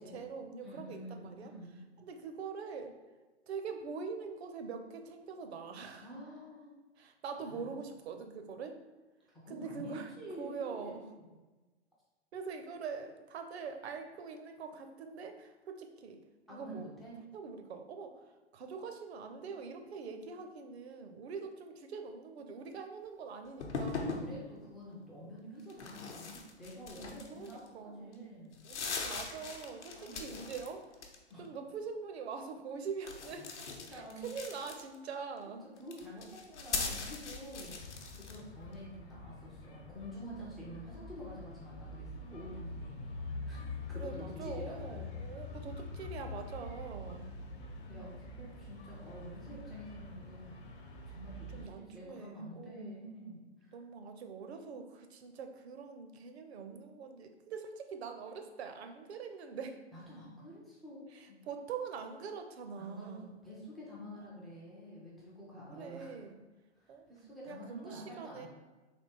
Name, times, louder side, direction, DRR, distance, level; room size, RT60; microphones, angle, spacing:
voice 1, 0.0-1.5 2.0-2.9 3.5-6.1 7.0-8.8 9.5-11.0 12.3-16.2 16.5-16.9 17.3-24.3 27.3-28.2 28.6-30.9 31.4-33.5 33.9-35.6 43.9-47.3 51.5-53.2 53.7-59.8 61.1-63.4 65.7-66.4 66.9-67.1 67.5-68.5, right 5 dB, 65° right, 6 dB, 0.7 m, -44 dB
voice 2, 0.6-1.8 6.0-6.8 7.4-7.7 9.3-11.3 16.5-17.2 24.0-28.6 29.9-30.4 31.3-31.5 33.6-34.2 35.8-43.1 43.5-43.6 43.9-45.0 47.5-50.6 50.8-53.7 59.9-61.4 62.8-66.2 66.7-68.5, equal, ahead, -7 dB, 0.3 m, -48 dB
sound 1, 23.6-24.3 25.7-27.7 28.1-28.2 28.5-30.7 30.9-31.5 33.0-35.1 35.8-38.4, left 4 dB, 75° left, 0.8 m, -40 dB
sound 2, 37.8-51.7, left 3 dB, 50° left, 0.9 m, -45 dB
3.5 x 2.8 x 4.2 m, 1.2 s
hypercardioid pair, 120°, 35 cm